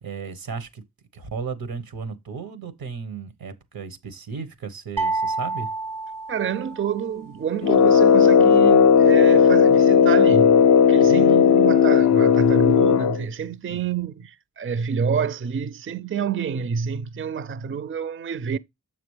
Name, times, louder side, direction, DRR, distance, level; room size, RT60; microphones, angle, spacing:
voice 1, 0.0-0.8 1.1-5.7 11.1-11.4 13.7-14.0, right 5 dB, 85° right, 1.2 m, -34 dB
sound 1, 5.0-7.1, right 3 dB, 65° right, 0.7 m, -29 dB
voice 2, 6.3-10.6 10.9-18.6, right 7 dB, 35° right, 0.5 m, -28 dB
Brass instrument, 7.6-13.2, left 7 dB, 50° left, 0.4 m, -15 dB
7.0 x 5.9 x 3.2 m
cardioid pair, 45°, 35 cm